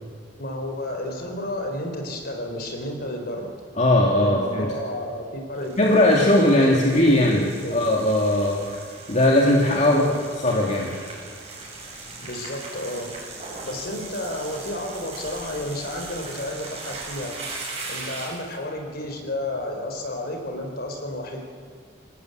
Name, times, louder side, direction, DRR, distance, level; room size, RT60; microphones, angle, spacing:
voice 1, 0.4-3.5 4.2-7.8 9.9-10.1 12.2-13.2 13.6-17.4 17.9-21.4, left 1 dB, 55° left, 3 dB, 4.1 m, -31 dB
voice 2, 3.8-4.7 5.8-10.0 10.4-10.9, left 1 dB, 40° left, -2 dB, 2.6 m, -19 dB
sound 1, 5.5-18.5, right 3 dB, 35° right, 7.3 m, -39 dB
27.0 x 17.5 x 8.0 m, 2.3 s
head